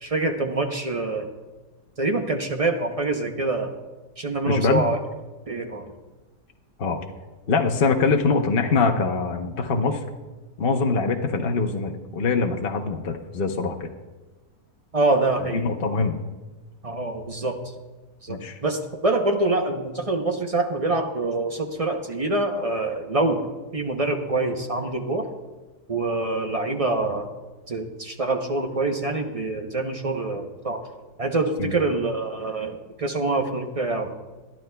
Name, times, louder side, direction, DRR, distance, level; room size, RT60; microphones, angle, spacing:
voice 1, 0.0-1.3 2.0-3.7 4.2-5.0 5.5-5.9 14.9-15.6 16.8-17.6 18.2-23.4 23.7-25.2 25.9-27.3 27.7-30.8 31.2-34.1, right 2 dB, 40° right, 4 dB, 0.5 m, -25 dB
voice 2, 4.5-4.8 6.8-7.0 7.5-10.0 10.6-13.9 15.5-16.1 18.3-18.6 31.6-31.7, left 4 dB, 50° left, 4 dB, 0.7 m, -23 dB
21.5 x 12.0 x 2.2 m, 1.2 s
omnidirectional pair, 1.7 m